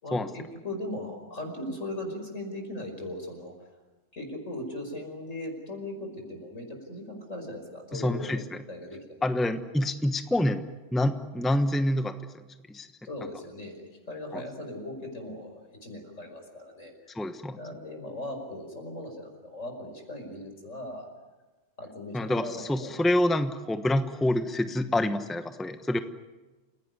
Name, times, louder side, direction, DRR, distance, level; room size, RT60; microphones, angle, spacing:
voice 1, 0.0-3.5 4.1-9.2 13.0-16.9 17.6-21.1 21.8-22.9, left 1 dB, 85° left, 4 dB, 5.8 m, -38 dB
voice 2, 7.9-8.4 9.2-10.6 10.9-12.1 12.7-12.9 14.3-14.4 17.1-17.6 22.1-26.0, left 1 dB, ahead, 8 dB, 1.0 m, -27 dB
29.0 x 17.0 x 9.6 m, 1.2 s
omnidirectional pair, 1.3 m